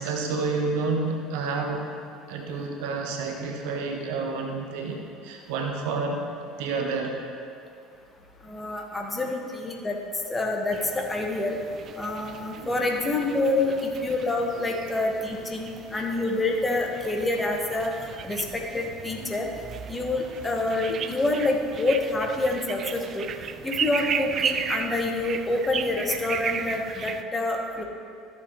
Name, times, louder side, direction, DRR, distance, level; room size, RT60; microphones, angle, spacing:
voice 1, 0.0-1.9 2.3-6.2 6.6-7.2, right 4 dB, 65° right, 2 dB, 1.0 m, -29 dB
voice 2, 8.4-10.0 10.3-11.6 12.0-13.8 14.0-17.9 18.2-19.5 19.9-23.3 23.6-27.8, left 2 dB, 20° left, 1 dB, 1.5 m, -27 dB
sound 1, 10.7-27.2, right 7 dB, 45° right, 0.4 m, -35 dB
14.5 x 6.9 x 3.1 m, 2.5 s
figure-of-eight pair, 60°, 0 cm